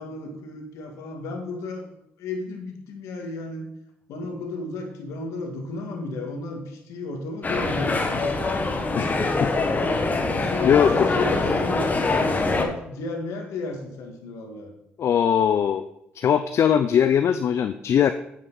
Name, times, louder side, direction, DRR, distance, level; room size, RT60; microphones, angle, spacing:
voice 1, 0.0-1.9 2.2-3.6 4.1-8.3 9.2-14.7, left 3 dB, 75° left, 3 dB, 1.9 m, -33 dB
sound 1, 7.4-12.6, left 3 dB, 30° left, 1.5 m, -24 dB
voice 2, 10.6-11.1 15.0-15.8 16.1-18.1, left 8 dB, 60° left, 10 dB, 0.5 m, -20 dB
8.9 x 7.3 x 4.0 m, 0.79 s
hypercardioid pair, 55°, 5 cm